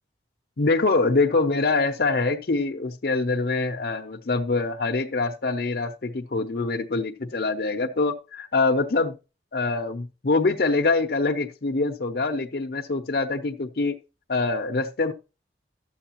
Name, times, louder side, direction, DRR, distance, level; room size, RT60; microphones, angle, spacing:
voice 1, 0.6-9.1 9.5-14.0 14.3-15.1, left 3 dB, 60° left, 3 dB, 0.6 m, -24 dB
12.0 x 7.6 x 2.9 m, 0.31 s
head